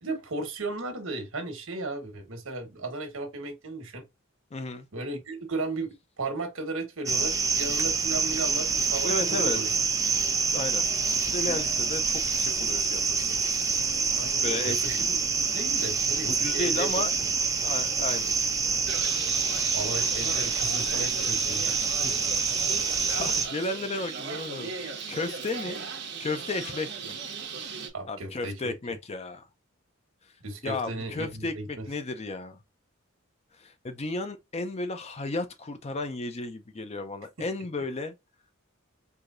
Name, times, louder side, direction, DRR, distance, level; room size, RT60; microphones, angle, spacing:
voice 1, 0.0-4.0 4.9-9.7 14.1-17.0 19.7-21.8 27.9-28.7 30.4-31.9 37.4-37.5, right 2 dB, 75° right, 1.3 m, -35 dB
voice 2, 4.5-4.9 9.0-9.6 10.3-10.9 11.3-13.4 14.4-15.1 16.3-17.1 17.6-18.3 18.7-18.9 20.2-20.3 22.0-22.1 22.8-25.8 26.2-27.2 28.1-29.5 30.6-32.6 33.6-38.1, left 3 dB, 30° left, 0.5 m, -34 dB
sound 1, 7.1-23.5, right 5 dB, 15° right, 0.6 m, -27 dB
Bird, 18.9-27.9, right 5 dB, 55° right, 1.1 m, -37 dB
4.7 x 2.7 x 2.5 m
head